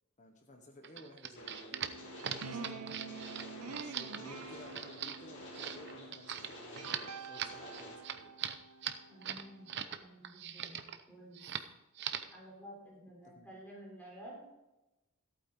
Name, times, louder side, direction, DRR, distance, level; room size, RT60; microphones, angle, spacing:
voice 1, 0.2-2.2 2.5-3.2 3.7-8.3 13.3-13.5, equal, 35° left, 4 dB, 1.2 m, -55 dB
sound 1, 0.8-10.0 10.2-11.0 11.3-11.7 12.0-12.4, right 9 dB, 50° right, 0.7 m, -41 dB
sound 2, 1.4-7.9, left 1 dB, 55° left, 3.6 m, -51 dB
sound 3, 1.7-9.8, right 4 dB, 85° right, 0.8 m, -48 dB
voice 2, 9.1-10.8 11.1-11.4 12.3-14.4, equal, 10° left, -4 dB, 3.7 m, -52 dB
14.5 x 8.8 x 3.9 m, 0.97 s
head